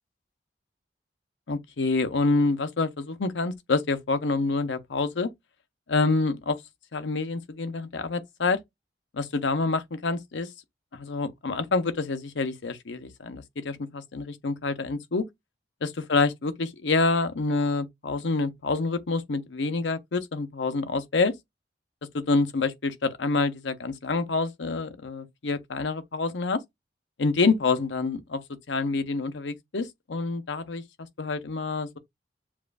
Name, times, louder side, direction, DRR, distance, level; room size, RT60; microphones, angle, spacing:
voice 1, 1.5-5.3 5.9-6.6 6.9-8.6 9.1-10.5 10.9-15.2 15.8-21.3 22.1-26.6 27.2-28.4 28.7-30.8 31.2-32.0, left 3 dB, 85° left, 0.7 m, -27 dB
7.1 x 2.4 x 2.3 m
head